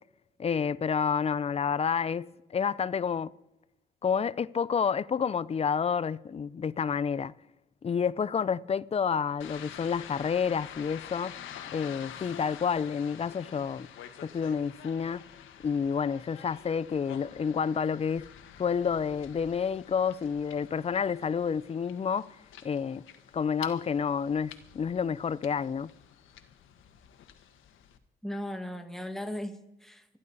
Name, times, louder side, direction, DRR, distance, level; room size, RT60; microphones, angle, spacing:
voice 1, 0.4-3.3 4.0-7.3 7.8-11.4 11.7-13.9 14.2-15.2 15.6-18.3 18.6-22.3 22.6-23.0 23.3-25.9, left 6 dB, 30° left, 0.5 m, -29 dB
sound 1, 9.4-28.0, left 9 dB, 80° left, 1.4 m, -48 dB
voice 2, 28.2-30.2, left 1 dB, ahead, 2.0 m, -37 dB
26.0 x 11.0 x 4.1 m
cardioid pair, 90°, 20 cm